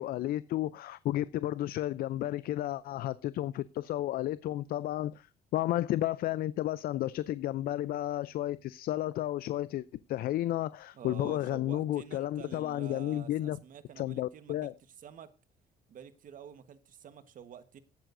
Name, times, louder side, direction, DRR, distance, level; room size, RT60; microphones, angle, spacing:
voice 1, 0.0-5.3 5.5-13.6 14.0-14.7, left 14 dB, 60° left, 0.4 m, -32 dB
voice 2, 10.9-14.7 15.0-15.3 15.9-17.8, right 8 dB, 55° right, 1.3 m, -48 dB
16.5 x 8.9 x 2.6 m
cardioid pair, 110°, 17 cm